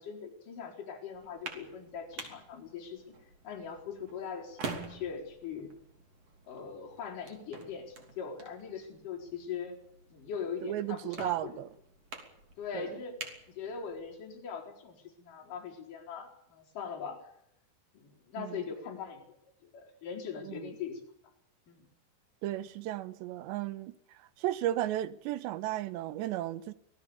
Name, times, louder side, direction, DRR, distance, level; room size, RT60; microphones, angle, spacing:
voice 1, 0.0-3.1 3.4-5.7 6.5-9.8 10.1-11.6 12.6-13.2 13.6-17.2 17.9-19.2 19.6-21.0 21.7-21.9, left 6 dB, 45° left, 5.5 m, -41 dB
sound 1, 1.1-14.2, right 4 dB, 35° right, 3.5 m, -48 dB
voice 2, 10.6-11.7 12.7-12.9 18.4-18.6 20.4-20.7 22.4-26.7, right 13 dB, 75° right, 3.0 m, -35 dB
25.0 x 17.5 x 7.1 m
omnidirectional pair, 5.3 m